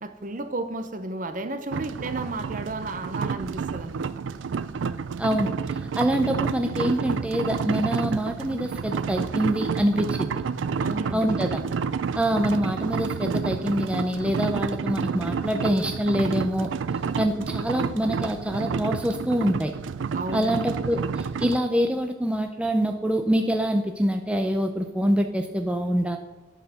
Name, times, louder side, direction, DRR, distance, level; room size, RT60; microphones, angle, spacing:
voice 1, 0.0-4.1 10.8-11.6 20.1-20.6, right 2 dB, 40° right, 9 dB, 0.7 m, -33 dB
sound 1, 1.7-21.6, right 5 dB, 70° right, 0.4 m, -30 dB
voice 2, 5.2-10.3 11.1-11.6 12.1-16.7 17.2-19.7 20.3-26.2, equal, 5° right, 4 dB, 0.5 m, -25 dB
9.4 x 6.5 x 5.8 m, 1.1 s
head